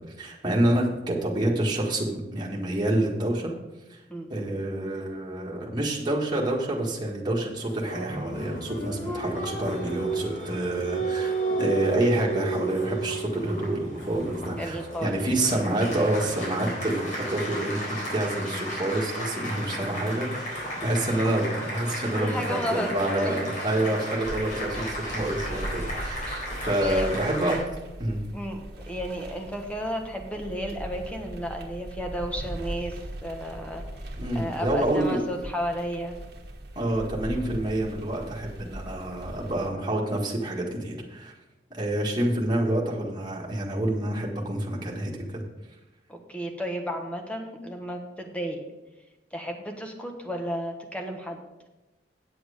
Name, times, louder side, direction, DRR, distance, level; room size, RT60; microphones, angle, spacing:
voice 1, 0.0-3.5 3.9-4.0 4.3-27.6 28.0-28.2 34.2-35.2 36.8-41.3 41.7-45.4, right 1 dB, 25° right, -3 dB, 1.8 m, -28 dB
Applause, 7.6-27.6, right 1 dB, 45° left, 4.0 m, -33 dB
voice 2, 14.6-15.2 16.5-16.7 22.1-23.4 26.8-27.1 28.3-28.6 28.9-33.8 34.3-36.2 46.1-48.6 49.3-51.4, equal, 5° left, 3 dB, 1.2 m, -33 dB
sound 1, 24.2-39.7, right 1 dB, 60° right, 1.3 m, -39 dB
9.1 x 7.8 x 5.0 m, 1.0 s
head